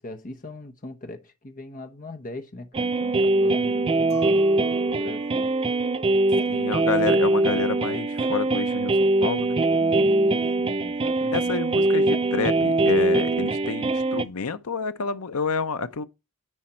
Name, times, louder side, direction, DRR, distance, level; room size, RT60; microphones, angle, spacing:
voice 1, 0.0-4.5 4.8-5.5 9.8-11.5, left 2 dB, 35° left, 1.0 m, -40 dB
sound 1, 2.7-14.3, right 2 dB, 25° right, 0.3 m, -22 dB
Chink clink, 4.1-9.6, right 3 dB, 60° right, 0.7 m, -45 dB
voice 2, 6.5-9.6 11.2-16.0, left 5 dB, 80° left, 0.7 m, -29 dB
9.9 x 4.3 x 4.3 m
head